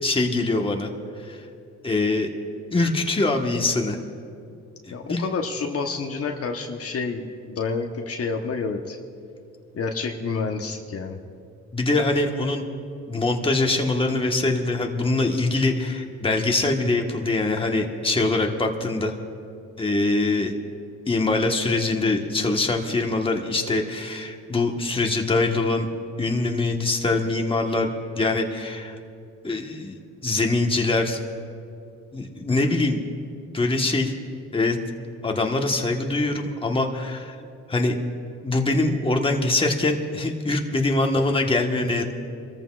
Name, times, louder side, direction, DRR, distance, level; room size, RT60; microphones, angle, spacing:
voice 1, 0.0-0.9 1.3-1.4 1.8-2.3 2.7-4.0 4.9-5.3 11.7-12.6 13.1-19.1 19.8-20.5 21.1-25.9 26.2-29.0 29.4-30.0 30.2-31.2 32.1-33.0 33.5-34.1 34.5-34.8 35.2-37.3 37.7-37.9 38.4-42.0, left 2 dB, 20° left, 2 dB, 1.4 m, -23 dB
voice 2, 4.9-9.0 9.7-11.2, left 4 dB, 50° left, 3 dB, 1.1 m, -29 dB
29.0 x 14.0 x 2.5 m, 2.4 s
cardioid pair, 90°, 30 cm